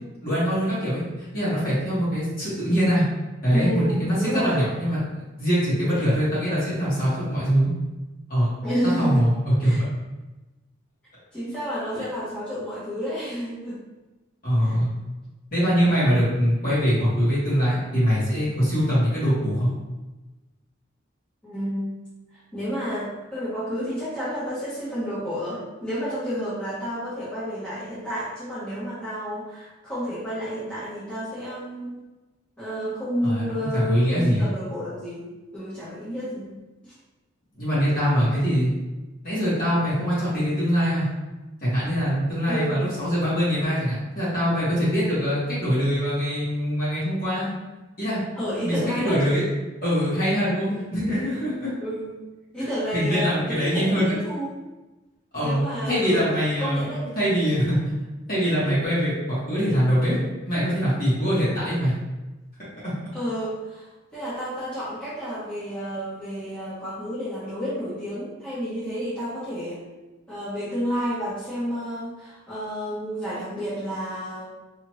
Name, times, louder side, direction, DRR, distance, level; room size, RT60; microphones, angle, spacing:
voice 1, 0.2-3.0 3.4-5.0 5.4-7.7 8.3-8.5 8.8-9.8 11.9-12.0 14.4-14.9 15.5-19.7 33.2-34.4 37.6-38.7 39.2-41.1 41.6-47.5 48.0-48.2 48.6-49.4 49.8-51.7 52.9-54.2 55.3-56.8 57.1-57.8 58.3-60.2 60.4-61.9 62.8-62.9, equal, 45° left, -9 dB, 1.3 m, -23 dB
voice 2, 3.5-4.6 8.6-9.3 9.6-9.8 11.3-13.8 14.6-14.8 21.4-21.9 22.5-31.9 32.6-35.3 35.5-36.5 38.3-38.4 42.4-42.8 48.4-49.2 50.7-50.8 51.8-52.2 52.5-54.5 55.4-57.0 63.1-69.8 70.3-74.4, equal, 5° left, -12 dB, 1.0 m, -30 dB
2.8 x 2.5 x 3.0 m, 1.1 s
head